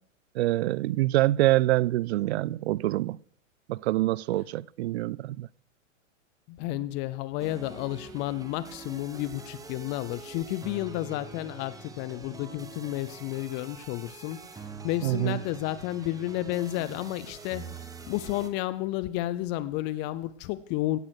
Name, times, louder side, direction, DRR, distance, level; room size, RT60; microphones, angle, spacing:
voice 1, 0.4-3.2 3.7-5.5 15.0-15.4, right 16 dB, 60° right, 0.5 m, -25 dB
voice 2, 6.5-14.4 14.8-21.0, left 15 dB, 30° left, 0.5 m, -32 dB
sound 1, 7.4-18.5, right 4 dB, 10° right, 1.1 m, -45 dB
16.5 x 8.3 x 6.4 m
hypercardioid pair, 120°, 38 cm